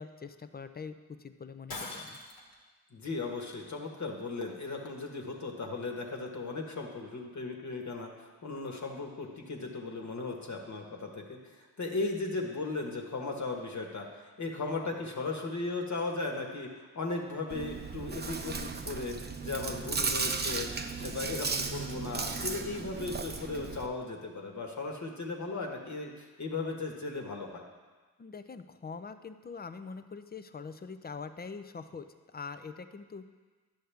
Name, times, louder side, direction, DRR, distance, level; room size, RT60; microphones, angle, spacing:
voice 1, 0.0-2.2 28.2-33.3, left 5 dB, 25° left, 11 dB, 0.6 m, -44 dB
Shatter, 1.7-2.6, left 3 dB, 65° left, 1.5 m, -41 dB
voice 2, 2.9-14.1 14.4-19.1 19.4-20.7 21.0-27.6, left 3 dB, 45° left, 1 dB, 1.5 m, -37 dB
Chewing mastication, 17.5-23.9, right 4 dB, 25° right, 0.7 m, -35 dB
10.0 x 6.4 x 3.4 m, 1.4 s
supercardioid pair, 45°, 39 cm